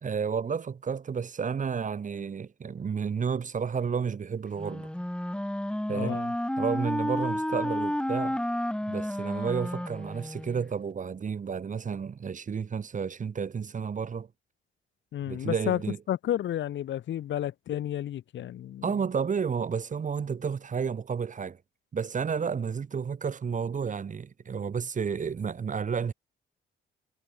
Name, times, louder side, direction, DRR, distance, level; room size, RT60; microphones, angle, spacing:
voice 1, 0.0-4.9 5.9-6.2 6.6-8.4 8.9-14.3 15.3-16.0 18.8-21.6 21.9-26.1, right 6 dB, 40° right, 1.8 m, -31 dB
Wind instrument woodwind instrument, 4.6-10.7, left 1 dB, 5° left, 4.4 m, -31 dB
voice 2, 5.9-6.3 15.1-15.8 16.1-18.9, left 11 dB, 70° left, 2.1 m, -31 dB
cardioid pair, 90°, 20 cm